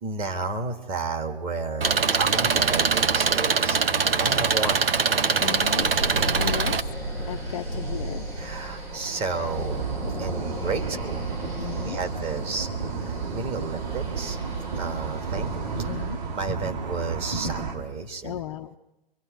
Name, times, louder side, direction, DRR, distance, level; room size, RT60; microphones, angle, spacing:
voice 1, 0.0-3.8 4.1-4.9 8.4-9.8 10.2-11.3 11.8-12.7 13.0-14.4 14.8-16.1 16.3-18.4, right 4 dB, 20° right, 3 dB, 1.6 m, -32 dB
Engine, 1.8-6.8, right 5 dB, 70° right, 1.2 m, -23 dB
sound 1, 4.6-16.4, right 1 dB, 90° right, 7.8 m, -35 dB
voice 2, 5.4-5.9 6.3-6.7 7.3-8.3 11.6-12.0 15.9-16.2 18.2-18.8, left 11 dB, 35° left, 5 dB, 0.7 m, -35 dB
sound 2, 9.7-17.8, right 5 dB, 45° right, 4.9 m, -32 dB
29.5 x 24.0 x 5.2 m, 0.94 s
figure-of-eight pair, 135°, 30 cm